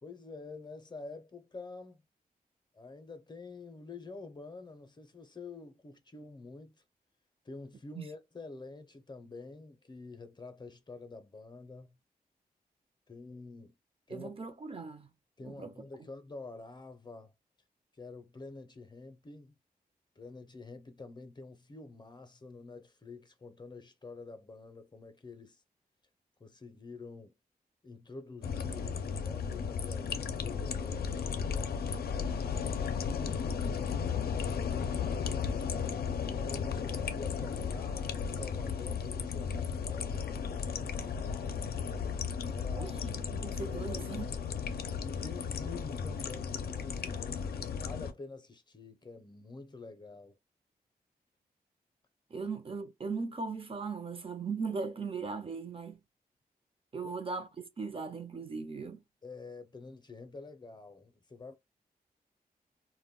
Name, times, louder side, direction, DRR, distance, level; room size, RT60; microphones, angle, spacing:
voice 1, 0.0-2.0 2.7-6.8 7.4-12.0 13.1-13.7 14.1-14.3 15.4-17.3 17.9-19.5 20.2-25.6 26.4-27.3 27.8-34.0 34.8-41.6 42.4-42.9 43.7-44.4 45.0-50.4 52.4-52.5 57.0-57.1 59.2-61.5, left 3 dB, 30° left, 0.5 m, -48 dB
voice 2, 14.1-15.1 15.4-15.7 42.8-44.3 52.3-56.0 56.9-59.0, right 4 dB, 35° right, 0.4 m, -38 dB
sound 1, 28.4-48.1, left 6 dB, 85° left, 0.4 m, -35 dB
2.2 x 2.1 x 3.5 m
cardioid pair, 75°, 16 cm